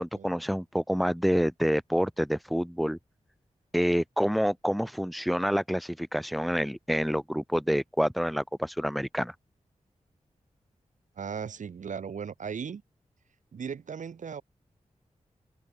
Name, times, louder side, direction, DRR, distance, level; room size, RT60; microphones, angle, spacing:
voice 1, 0.0-3.0 3.7-9.3, equal, ahead, 0.7 m, -27 dB
voice 2, 11.1-12.8 13.5-14.4, right 6 dB, 85° right, 1.8 m, -37 dB
open air
wide cardioid pair, 75°, 13 cm